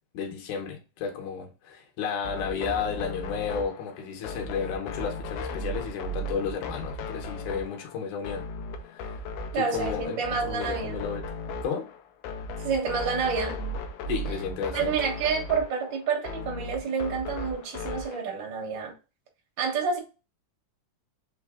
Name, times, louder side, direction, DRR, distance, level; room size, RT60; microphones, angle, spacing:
voice 1, 0.1-8.4 8.9-9.1 9.5-11.2 11.6-11.9 14.1-15.0, left 6 dB, 70° left, 2.3 m, -32 dB
sound 1, 2.2-18.2, left 2 dB, 90° left, 1.7 m, -36 dB
voice 2, 9.5-11.0 12.6-13.6 14.7-18.9 19.6-20.0, right 5 dB, 75° right, 1.0 m, -28 dB
5.5 x 2.2 x 3.6 m
omnidirectional pair, 4.1 m